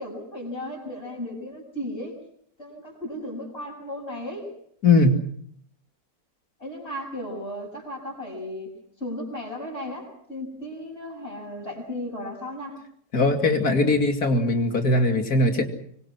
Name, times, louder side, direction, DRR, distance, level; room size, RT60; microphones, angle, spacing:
voice 1, 0.0-2.2 2.6-4.5 6.6-8.7 9.0-12.8, left 1 dB, 40° left, -3 dB, 6.9 m, -35 dB
voice 2, 4.8-5.2 13.1-15.7, left 2 dB, 70° left, 5 dB, 3.1 m, -20 dB
25.0 x 24.0 x 6.2 m, 0.65 s
omnidirectional pair, 1.6 m